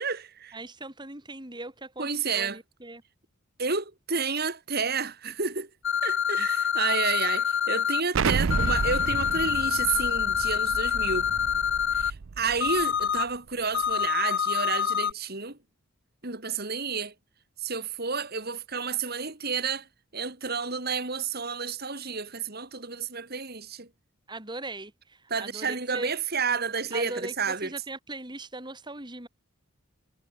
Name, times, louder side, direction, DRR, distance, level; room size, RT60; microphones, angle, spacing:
voice 1, 0.0-0.6 2.0-2.6 3.6-5.7 6.0-11.3 11.9-15.6 16.2-17.1 17.6-19.9 20.1-23.9 25.3-27.7, right 5 dB, 45° right, 3.7 m, -30 dB
voice 2, 0.5-3.0 6.4-6.5 24.3-26.1 26.9-27.3 27.6-29.3, right 2 dB, 20° right, 3.4 m, -39 dB
sound 1, 5.8-8.0 8.5-12.1 12.6-13.2 13.7-15.1, left 8 dB, 55° left, 0.8 m, -26 dB
Explosion, 8.1-12.8, right 5 dB, 65° right, 0.5 m, -31 dB
head